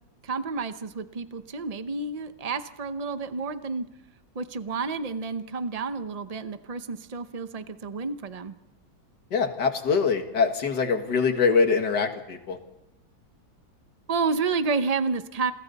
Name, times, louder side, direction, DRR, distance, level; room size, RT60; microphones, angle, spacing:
voice 1, 0.2-3.9 4.3-8.5 14.1-15.5, right 4 dB, 90° right, 10 dB, 0.3 m, -30 dB
voice 2, 9.3-12.6, left 5 dB, 65° left, 6 dB, 2.4 m, -23 dB
28.5 x 23.0 x 4.1 m, 0.93 s
omnidirectional pair, 2.0 m